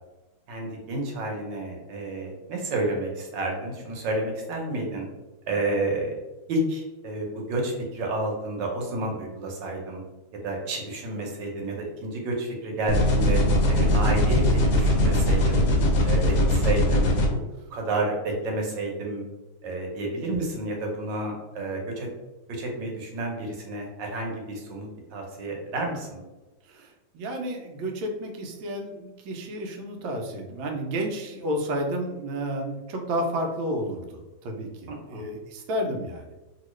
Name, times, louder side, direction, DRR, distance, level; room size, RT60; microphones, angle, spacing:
voice 1, 0.5-5.1 5.5-6.1 6.5-10.0 10.4-13.4 13.7-15.7 16.0-17.4 17.7-19.2 19.6-22.1 22.5-26.2 34.9-35.3, right 2 dB, 70° right, 0 dB, 1.5 m, -30 dB
sound 1, 12.9-17.3, left 1 dB, 65° left, 0.9 m, -21 dB
voice 2, 26.7-36.3, equal, 90° right, 3 dB, 1.4 m, -31 dB
3.0 x 2.9 x 3.0 m, 1.1 s
omnidirectional pair, 2.1 m